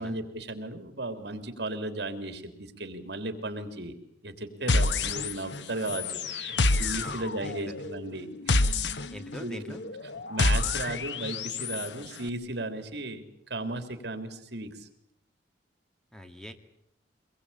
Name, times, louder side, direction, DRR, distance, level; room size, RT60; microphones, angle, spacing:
voice 1, 0.0-3.9 4.2-8.8 9.4-9.8 10.3-13.2 13.5-14.9, right 2 dB, 65° right, 9 dB, 3.3 m, -35 dB
sound 1, 4.7-5.6 5.8-11.9, left 3 dB, 80° left, 1.1 m, -28 dB
voice 2, 7.0-7.7 9.1-9.8 16.1-16.5, equal, 5° left, 7 dB, 1.9 m, -43 dB
24.5 x 21.5 x 8.7 m, 0.75 s
head